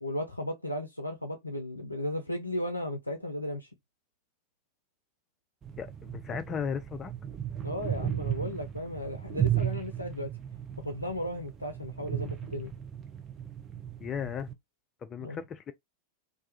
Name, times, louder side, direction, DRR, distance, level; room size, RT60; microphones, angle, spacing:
voice 1, 0.0-3.7 7.6-10.3 10.8-12.7 15.2-15.4, left 1 dB, 85° left, 0.4 m, -35 dB
sound 1, 5.6-14.5, right 10 dB, 25° right, 0.6 m, -35 dB
voice 2, 5.8-7.1 14.0-14.5 15.0-15.7, left 7 dB, 25° left, 0.4 m, -36 dB
2.4 x 2.3 x 2.7 m
figure-of-eight pair, 90°, 0 cm